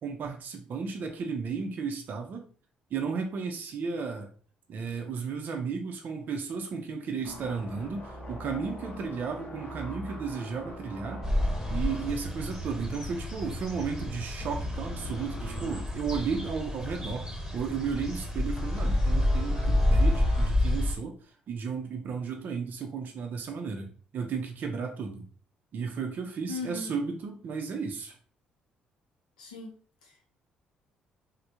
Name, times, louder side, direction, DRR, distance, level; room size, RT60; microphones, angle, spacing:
voice 1, 0.0-2.5 2.9-4.3 4.7-11.3 11.7-21.2 21.5-25.3 25.7-28.2, right 5 dB, 45° right, 3 dB, 0.4 m, -34 dB
sound 1, 7.2-13.3 13.6-13.9 14.4-15.9 16.4-16.5 18.6-20.5, equal, 35° left, 0.7 m, -42 dB
sound 2, 11.2-20.9, left 1 dB, 10° right, 1.1 m, -29 dB
voice 2, 26.5-26.9 29.4-29.8 30.0-30.3, left 3 dB, 75° left, 0 dB, 0.6 m, -38 dB
3.2 x 2.0 x 2.7 m, 0.43 s
figure-of-eight pair, 45°, 4 cm